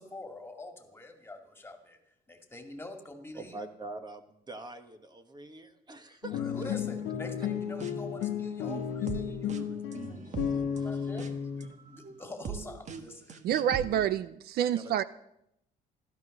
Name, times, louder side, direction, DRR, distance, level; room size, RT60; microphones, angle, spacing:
voice 1, 0.0-2.0 2.3-3.6 6.4-13.4, left 2 dB, 15° left, 5 dB, 2.5 m, -46 dB
voice 2, 3.3-6.7 7.4-7.5 10.2-11.2 14.6-15.0, right 2 dB, 25° right, 8 dB, 1.4 m, -45 dB
sound 1, 6.2-11.7, left 8 dB, 80° left, 1.3 m, -33 dB
sound 2, 7.5-8.3 8.7-14.1, right 6 dB, 45° right, 1.4 m, -41 dB
voice 3, 13.4-15.0, right 10 dB, 65° right, 16 dB, 0.6 m, -28 dB
15.5 x 13.0 x 6.7 m, 0.80 s
cardioid pair, 110°, 17 cm